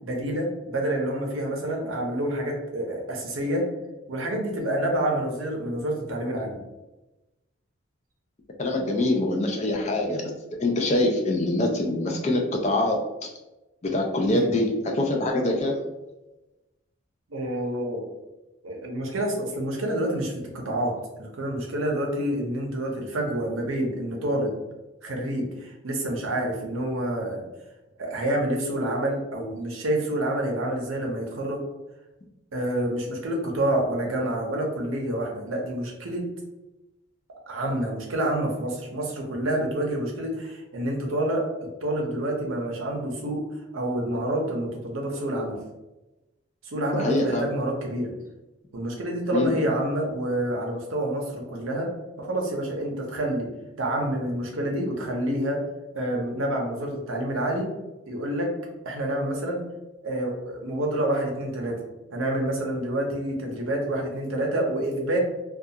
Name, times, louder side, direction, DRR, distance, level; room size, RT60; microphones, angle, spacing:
voice 1, 0.0-3.6 4.1-6.6 14.3-14.5 17.3-18.0 18.6-20.9 21.2-24.5 25.0-27.4 28.0-31.6 32.5-36.3 37.5-41.4 41.8-43.4 43.7-45.6 46.6-48.1 48.7-51.9 52.2-53.5 53.8-55.6 55.9-57.7 58.1-58.5 58.8-59.6 60.0-61.8 62.1-65.2, right 1 dB, 85° right, 0 dB, 0.6 m, -28 dB
voice 2, 8.6-10.3 10.6-13.3 13.8-15.8 46.9-47.5 49.3-49.5, left 1 dB, 35° left, 1 dB, 0.3 m, -24 dB
2.3 x 2.3 x 2.7 m, 1.0 s
head